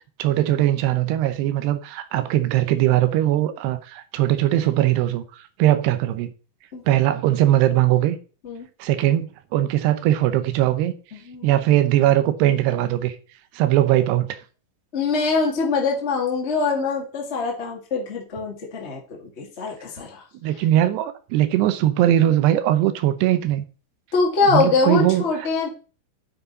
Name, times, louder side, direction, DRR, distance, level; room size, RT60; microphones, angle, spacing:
voice 1, 0.2-6.3 6.9-8.2 8.8-10.9 11.4-13.2 13.5-14.4 20.4-23.6 24.5-25.2, right 13 dB, 80° right, 2.9 m, -20 dB
voice 2, 11.1-11.5 14.9-20.2 24.1-25.7, left 4 dB, 75° left, 0.6 m, -23 dB
9.4 x 8.4 x 4.0 m
omnidirectional pair, 4.8 m